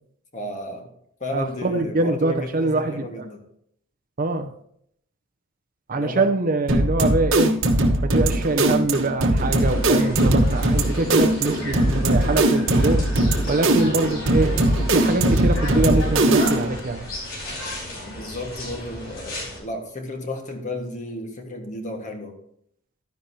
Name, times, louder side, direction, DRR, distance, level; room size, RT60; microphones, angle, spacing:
voice 1, 0.3-0.9 1.2-3.4 5.9-6.3 18.1-22.3, left 2 dB, 35° left, 4 dB, 1.6 m, -33 dB
voice 2, 1.3-3.1 4.2-4.5 5.9-7.6 8.0-13.1 13.5-14.6 14.9-17.1, right 2 dB, 40° right, 7 dB, 0.6 m, -24 dB
sound 1, 6.7-16.8, right 1 dB, 65° right, 1.2 m, -20 dB
sound 2, 9.5-19.6, left 1 dB, 70° left, 4.8 m, -35 dB
12.0 x 10.0 x 2.8 m, 0.70 s
head